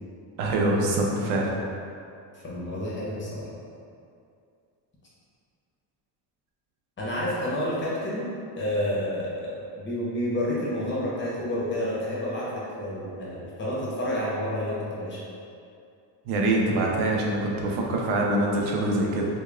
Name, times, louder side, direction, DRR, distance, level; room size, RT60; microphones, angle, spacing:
voice 1, 0.4-1.5 16.3-19.3, right 2 dB, 75° right, -2 dB, 0.7 m, -24 dB
voice 2, 2.4-3.5 7.0-8.3 8.6-15.2, left 1 dB, 25° left, -7 dB, 0.8 m, -29 dB
5.1 x 2.2 x 2.4 m, 2.4 s
cardioid pair, 135°, 49 cm